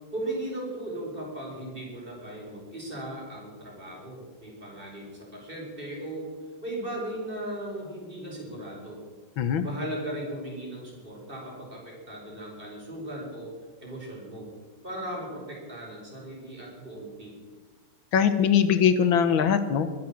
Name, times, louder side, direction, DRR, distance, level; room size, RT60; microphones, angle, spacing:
voice 1, 0.1-6.4 6.6-9.0 9.6-13.5 13.8-14.5 14.8-17.4, right 1 dB, 25° right, -2 dB, 5.2 m, -37 dB
voice 2, 18.1-20.1, left 8 dB, 85° left, 10 dB, 1.8 m, -22 dB
23.5 x 8.0 x 7.4 m, 1.5 s
omnidirectional pair, 2.1 m